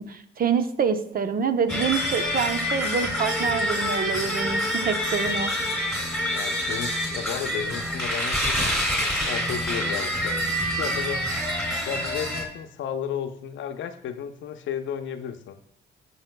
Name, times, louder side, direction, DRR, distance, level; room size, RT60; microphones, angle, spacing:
voice 1, 0.0-5.5, right 6 dB, 45° right, 9 dB, 0.8 m, -26 dB
sound 1, 1.7-12.4, equal, ahead, 2.7 m, -27 dB
voice 2, 5.6-11.3 11.9-15.5, left 8 dB, 70° left, 8 dB, 0.7 m, -34 dB
16.0 x 5.6 x 2.2 m, 0.73 s
cardioid pair, 90°, 20 cm